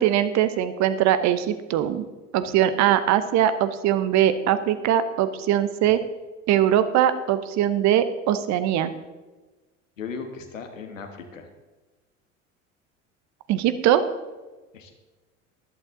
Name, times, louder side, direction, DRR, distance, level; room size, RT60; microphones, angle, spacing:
voice 1, 0.0-2.0 2.3-6.0 6.5-8.9 13.5-14.0, right 11 dB, 45° right, 12 dB, 1.0 m, -21 dB
voice 2, 10.0-11.5 14.7-14.9, left 5 dB, 80° left, 5 dB, 1.6 m, -37 dB
14.0 x 11.5 x 3.8 m, 1.2 s
figure-of-eight pair, 65°, 38 cm